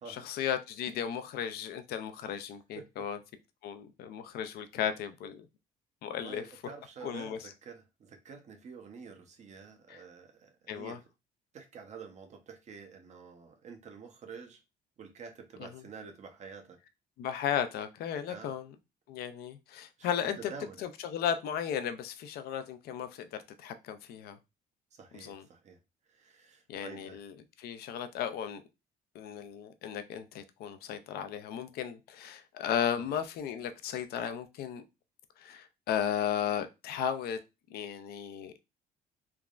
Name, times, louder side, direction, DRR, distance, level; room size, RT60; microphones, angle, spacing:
voice 1, 0.1-3.2 3.6-5.5 6.0-6.4 7.0-7.4 9.9-10.0 10.7-11.0 15.6-15.8 17.2-18.7 19.1-20.5 20.8-24.4 25.1-25.5 26.7-28.6 29.1-34.8 35.4-37.4 37.7-38.6, left 9 dB, 70° left, 0.4 m, -35 dB
voice 2, 2.8-3.1 6.1-11.0 11.5-14.6 15.0-16.8 18.3-18.5 20.0-20.8 24.9-25.8 26.1-27.2 33.0-33.1, right 5 dB, 45° right, 0.7 m, -48 dB
3.3 x 2.0 x 2.4 m
cardioid pair, 110°, 17 cm